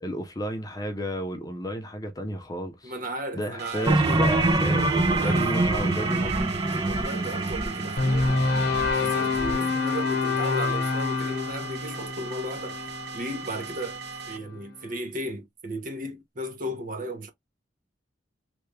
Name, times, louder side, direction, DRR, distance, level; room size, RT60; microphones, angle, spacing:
voice 1, 0.0-2.9 3.3-6.5, equal, 20° left, 0.7 m, -32 dB
voice 2, 2.8-4.1 5.1-5.5 6.7-8.5 8.9-14.0 14.3-17.3, right 1 dB, 50° right, 0.9 m, -35 dB
sound 1, 3.6-14.4, right 5 dB, 65° right, 0.6 m, -39 dB
sound 2, 3.9-9.5, right 2 dB, 25° right, 0.6 m, -25 dB
sound 3, 8.0-14.2, left 4 dB, 60° left, 1.0 m, -27 dB
3.4 x 2.3 x 3.3 m
head